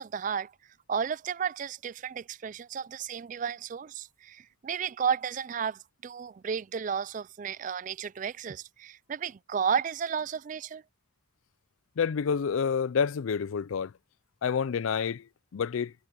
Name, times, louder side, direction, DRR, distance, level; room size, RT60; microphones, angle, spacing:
voice 1, 0.0-10.8, right 7 dB, 40° right, 0.3 m, -33 dB
voice 2, 12.0-13.9 14.4-15.3 15.5-15.9, left 6 dB, 80° left, 0.4 m, -28 dB
head